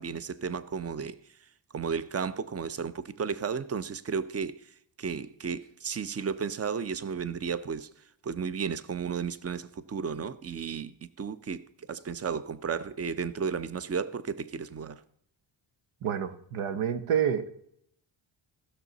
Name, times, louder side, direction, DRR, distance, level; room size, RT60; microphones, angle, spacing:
voice 1, 0.0-1.4 1.7-7.9 8.2-15.0, right 6 dB, 30° right, 0.7 m, -33 dB
voice 2, 16.0-17.5, right 8 dB, 80° right, 1.1 m, -28 dB
15.0 x 6.6 x 4.1 m
cardioid pair, 70°, 50 cm